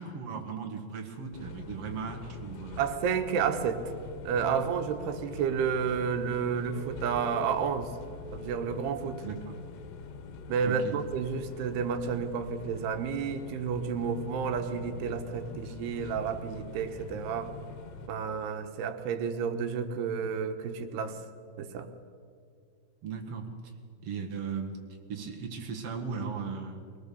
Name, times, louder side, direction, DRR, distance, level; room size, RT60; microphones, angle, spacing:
voice 1, 0.0-2.8 9.2-9.6 10.6-10.9 23.0-23.7 24.0-24.8 25.1-26.8, right 5 dB, 50° right, 2 dB, 2.1 m, -37 dB
sound 1, 1.3-18.1, left 4 dB, 85° left, 3.4 m, -44 dB
voice 2, 2.8-3.8 4.2-7.9 8.3-9.2 10.5-17.5 18.1-21.2 21.6-21.9, right 6 dB, 90° right, 8 dB, 3.2 m, -31 dB
Chink clink, 6.6-11.0 11.3-11.8, left 2 dB, 5° right, 2.4 m, -49 dB
22.5 x 19.0 x 7.0 m, 2.3 s
omnidirectional pair, 4.6 m